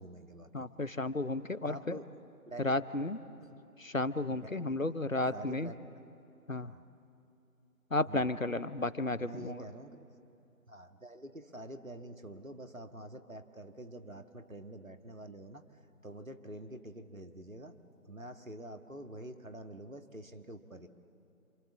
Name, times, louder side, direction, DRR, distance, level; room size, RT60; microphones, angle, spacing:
voice 1, 0.0-0.7 1.7-2.8 3.4-3.6 4.3-5.8 6.6-6.9 8.1-8.3 9.2-10.1 10.7-15.6 16.0-20.9, right 1 dB, 60° right, 7 dB, 1.7 m, -47 dB
voice 2, 0.5-2.0 2.6-3.2 3.8-5.7 6.5-6.7 7.9-9.6, left 2 dB, 60° left, 15 dB, 0.9 m, -33 dB
28.0 x 27.0 x 7.3 m, 2.7 s
figure-of-eight pair, 180°, 45 cm